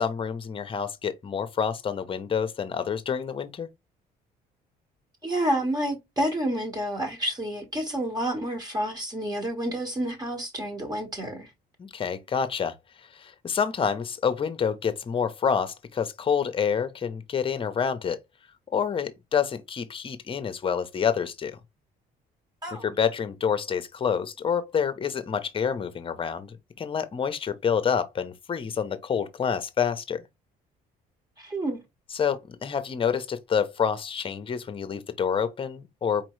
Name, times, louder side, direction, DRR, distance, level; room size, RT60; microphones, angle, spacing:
voice 1, 0.0-3.7 11.8-12.8 13.1-18.2 18.7-21.6 22.8-30.2 32.1-36.3, left 7 dB, 30° left, 0.8 m, -28 dB
voice 2, 5.2-11.5 22.6-22.9 31.4-31.8, right 1 dB, 25° right, 1.4 m, -29 dB
4.5 x 3.0 x 3.1 m
cardioid pair, 110°, 17 cm